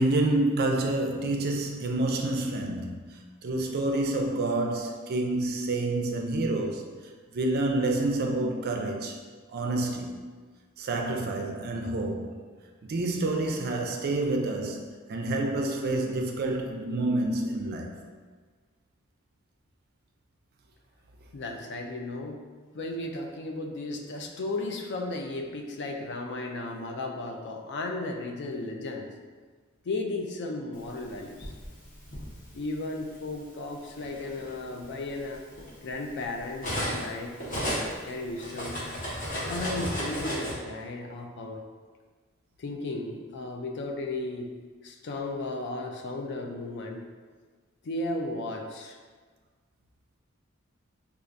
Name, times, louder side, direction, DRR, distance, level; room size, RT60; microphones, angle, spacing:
voice 1, 0.0-6.8 7.3-9.2 9.5-10.2 10.8-12.3 12.8-17.9, right 2 dB, 50° right, 0.4 m, -28 dB
voice 2, 21.3-22.4 22.7-29.1 29.8-31.5 32.5-35.4 35.8-37.3 38.1-38.8 39.3-41.6 42.6-44.5 44.8-47.0 47.8-49.0, left 2 dB, 55° left, 0.4 m, -35 dB
Cutlery silverware, 31.0-32.3 33.2-33.4 33.8-37.1 37.4-40.5, equal, 40° left, 0.9 m, -34 dB
4.4 x 2.4 x 2.5 m
head